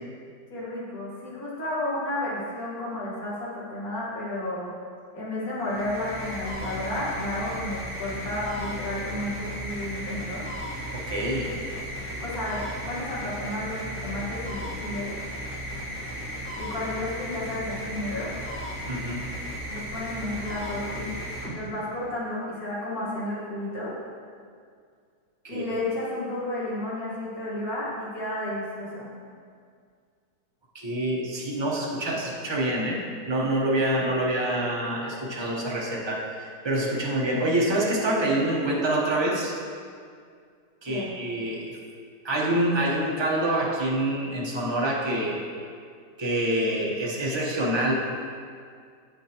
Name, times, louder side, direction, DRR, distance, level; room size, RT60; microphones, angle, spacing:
voice 1, 0.5-4.7 5.1-10.5 12.2-15.2 16.6-18.3 19.7-21.1 21.5-24.0 25.5-29.1 40.9-41.1, left 1 dB, 55° left, -7 dB, 2.0 m, -32 dB
sound 1, 5.6-22.1, equal, 10° left, 1.2 m, -35 dB
voice 2, 11.1-11.6 18.9-19.3 25.4-25.6 30.7-33.0 33.3-39.5 40.8-41.8 42.2-45.4 46.2-47.9, right 1 dB, 25° right, -4 dB, 0.5 m, -26 dB
7.9 x 6.3 x 2.9 m, 2.2 s
omnidirectional pair, 1.9 m